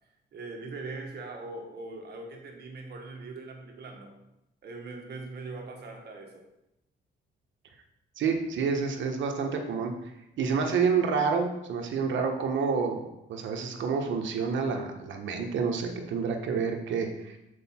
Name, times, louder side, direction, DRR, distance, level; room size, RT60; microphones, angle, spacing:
voice 1, 0.3-4.2 4.6-6.5, right 3 dB, 55° right, 2 dB, 1.5 m, -41 dB
voice 2, 8.2-9.9 10.4-17.4, right 5 dB, 70° right, 3 dB, 1.2 m, -28 dB
6.6 x 4.8 x 4.3 m, 0.87 s
cardioid pair, 90°, 20 cm